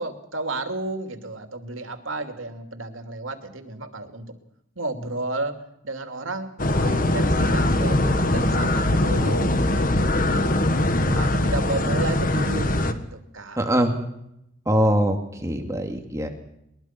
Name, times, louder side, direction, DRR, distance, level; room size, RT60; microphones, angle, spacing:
voice 1, 0.0-4.3 4.8-5.6 5.8-10.6 11.1-13.6, right 2 dB, 85° right, 7 dB, 2.8 m, -32 dB
sound 1, 6.6-12.9, left 1 dB, 45° left, 1.6 m, -21 dB
voice 2, 13.6-14.0 14.7-16.3, equal, 15° right, 4 dB, 2.4 m, -22 dB
22.0 x 21.5 x 6.0 m, 0.78 s
head